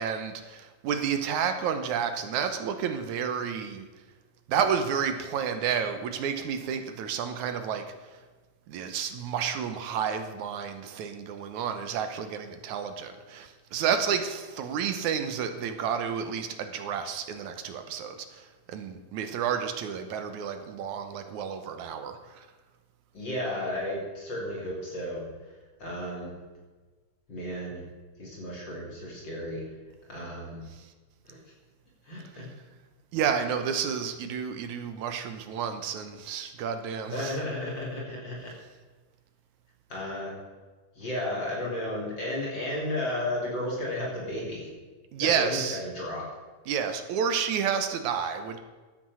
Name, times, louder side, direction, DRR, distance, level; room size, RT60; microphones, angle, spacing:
voice 1, 0.0-3.9 4.5-7.8 8.7-22.5 33.1-37.4 45.1-45.8 46.7-48.6, right 7 dB, 70° right, 8 dB, 2.2 m, -30 dB
voice 2, 23.1-25.3 25.8-26.3 27.3-27.8 28.2-29.7 30.1-30.7 31.3-31.4 32.0-32.5 37.1-38.5 39.9-40.3 41.0-44.7 45.2-46.3, left 1 dB, 35° left, -4 dB, 3.4 m, -33 dB
13.5 x 8.6 x 6.3 m, 1.3 s
omnidirectional pair, 3.7 m